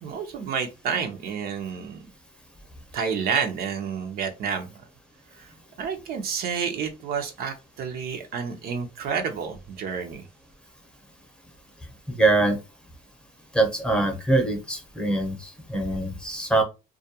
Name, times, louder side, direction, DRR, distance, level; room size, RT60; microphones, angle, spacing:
voice 1, 0.0-2.0 2.9-4.7 5.4-5.5 5.8-10.2, right 6 dB, 65° right, 5 dB, 0.6 m, -29 dB
voice 2, 12.2-12.6 13.5-16.6, right 2 dB, 5° left, 3 dB, 0.7 m, -23 dB
2.3 x 2.2 x 2.7 m, 0.27 s
cardioid pair, 110°, 17 cm